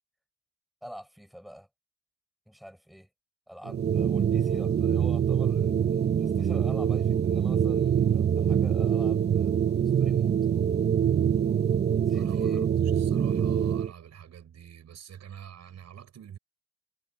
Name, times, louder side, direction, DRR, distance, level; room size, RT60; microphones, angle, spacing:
voice 1, 0.8-1.7 2.5-3.1 3.5-9.5 10.0-10.4 12.0-12.6, equal, ahead, 5.0 m, -46 dB
sound 1, 3.7-13.9, right 8 dB, 35° right, 0.7 m, -24 dB
voice 2, 12.1-16.4, right 9 dB, 60° right, 5.2 m, -46 dB
cardioid pair, 90°, 30 cm